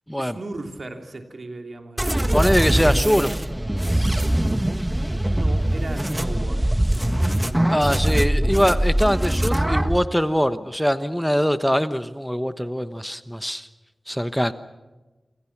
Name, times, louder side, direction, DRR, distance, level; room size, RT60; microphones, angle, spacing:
voice 1, 0.2-2.5 5.2-6.7 7.7-8.2, right 2 dB, 65° right, 5 dB, 3.1 m, -36 dB
sound 1, 2.0-10.0, right 1 dB, 15° right, 1.4 m, -22 dB
voice 2, 2.3-3.4 7.7-13.7 14.1-14.5, equal, ahead, 11 dB, 1.1 m, -22 dB
27.0 x 25.5 x 6.1 m, 1.2 s
cardioid pair, 40°, 0 cm